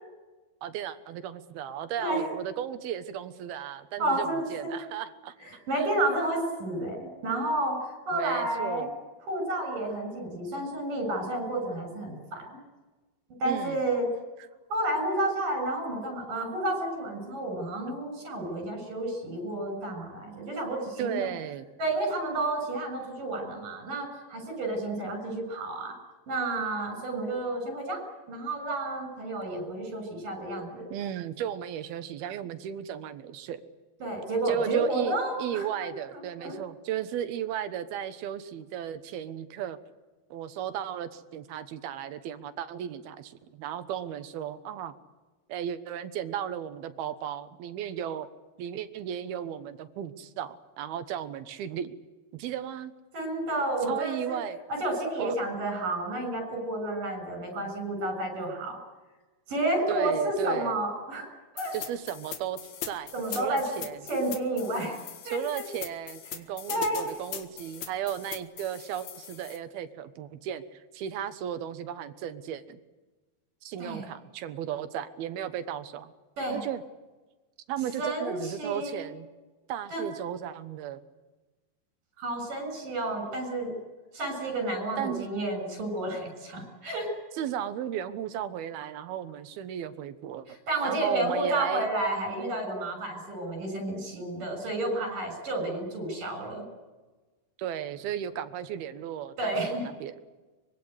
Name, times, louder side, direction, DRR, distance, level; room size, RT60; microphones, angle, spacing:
voice 1, 0.6-5.3 5.7-5.9 8.1-8.9 13.4-13.9 21.0-21.7 30.9-33.6 34.5-35.1 35.4-39.8 40.3-44.9 45.5-48.3 48.6-52.0 52.3-52.9 53.9-54.6 55.2-55.4 59.9-60.8 61.7-62.6 62.8-64.0 65.3-72.8 73.6-76.1 76.5-76.8 77.7-79.3 79.7-81.0 85.0-85.3 87.3-90.5 90.8-91.9 97.6-99.5 99.8-100.1, right 10 dB, 80° right, 11 dB, 3.1 m, -35 dB
voice 2, 4.0-4.7 5.4-8.9 9.3-12.6 13.4-14.1 14.7-21.3 21.8-25.9 26.3-28.0 28.3-30.9 34.0-36.5 53.1-54.4 54.8-58.8 59.5-61.3 61.5-61.8 63.1-63.6 64.1-65.0 65.3-65.6 66.7-67.1 73.8-74.1 76.4-76.6 78.0-79.0 79.9-80.0 82.2-83.8 84.1-87.1 90.5-96.6 99.4-99.8, right 2 dB, 60° right, 5 dB, 8.7 m, -31 dB
sound 1, 61.6-69.6, left 9 dB, 70° left, 3.5 m, -41 dB
24.5 x 23.0 x 8.1 m, 1.2 s
omnidirectional pair, 4.4 m